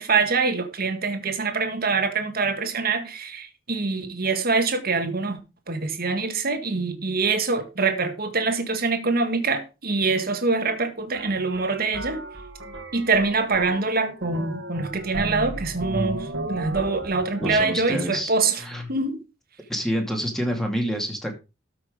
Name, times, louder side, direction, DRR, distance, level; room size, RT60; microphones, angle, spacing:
voice 1, 0.0-5.4 5.7-12.2 12.9-18.6 18.9-19.2, right 4 dB, 50° right, 1.7 m, -24 dB
sound 1, 11.1-17.5, right 2 dB, 65° right, 1.9 m, -34 dB
voice 2, 17.4-18.3 18.6-18.9 19.7-21.3, equal, ahead, 2.4 m, -27 dB
13.5 x 6.0 x 5.0 m
head